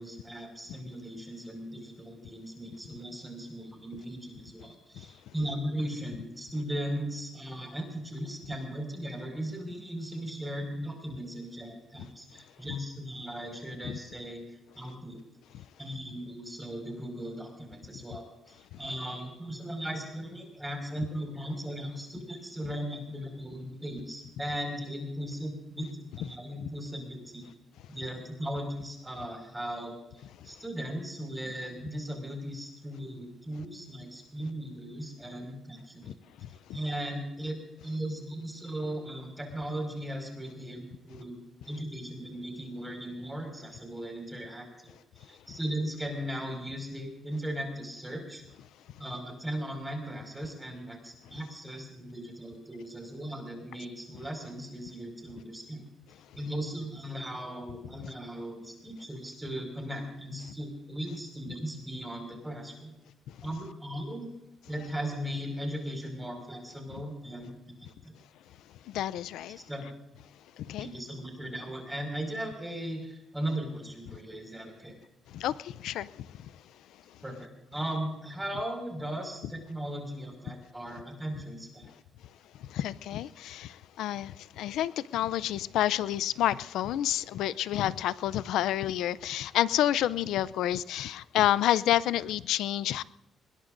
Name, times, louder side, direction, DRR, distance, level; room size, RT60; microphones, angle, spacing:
voice 1, 0.0-14.4 14.8-15.2 15.8-27.5 27.9-36.2 36.7-41.4 41.6-44.9 45.2-48.4 49.0-55.8 56.3-62.9 63.4-64.3 64.7-67.8 68.0-68.1 69.7-69.9 70.8-75.0 77.2-81.9, equal, 10° right, 3 dB, 5.3 m, -37 dB
voice 2, 68.9-69.6 70.6-70.9 74.1-74.2 75.3-76.5 80.5-80.6 82.6-93.0, left 12 dB, 85° left, 18 dB, 0.5 m, -29 dB
21.0 x 20.5 x 2.6 m, 0.93 s
cardioid pair, 90°, 0 cm